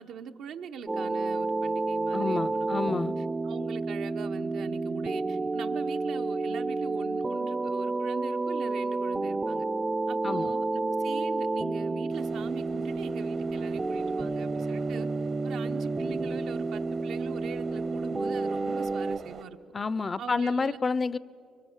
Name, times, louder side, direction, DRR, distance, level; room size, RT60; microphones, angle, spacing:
voice 1, 0.0-2.8 3.2-9.7 10.1-15.1 15.4-19.6 20.2-20.8, right 7 dB, 80° right, 6 dB, 0.9 m, -42 dB
sound 1, 0.9-19.2, right 3 dB, 20° right, 0.5 m, -30 dB
voice 2, 2.1-3.2 10.2-10.5 19.7-21.2, left 4 dB, 35° left, 19 dB, 0.5 m, -29 dB
sound 2, 12.1-19.4, right 5 dB, 60° right, 1.0 m, -45 dB
25.5 x 23.5 x 7.2 m, 2.8 s
cardioid pair, 90°, 0 cm